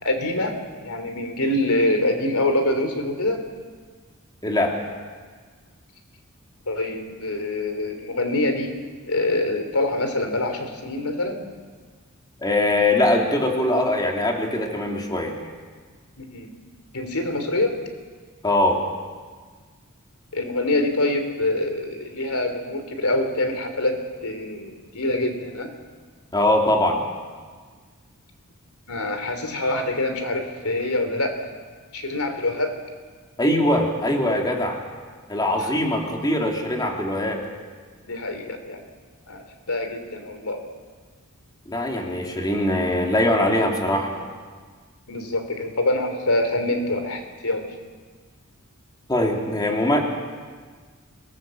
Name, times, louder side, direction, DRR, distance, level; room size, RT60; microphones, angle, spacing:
voice 1, 0.0-3.4 6.7-8.7 9.1-11.5 16.2-16.5 16.9-17.8 20.3-25.7 28.9-31.4 31.9-32.8 35.6-35.7 38.1-38.8 39.3-40.6 45.1-47.6, left 2 dB, 90° left, 6 dB, 3.3 m, -25 dB
voice 2, 4.4-4.8 12.4-15.3 18.4-18.8 26.3-27.0 33.4-34.8 35.3-37.4 41.7-44.1 49.1-50.0, left 1 dB, 20° left, 1 dB, 3.0 m, -22 dB
25.5 x 18.0 x 7.7 m, 1.5 s
head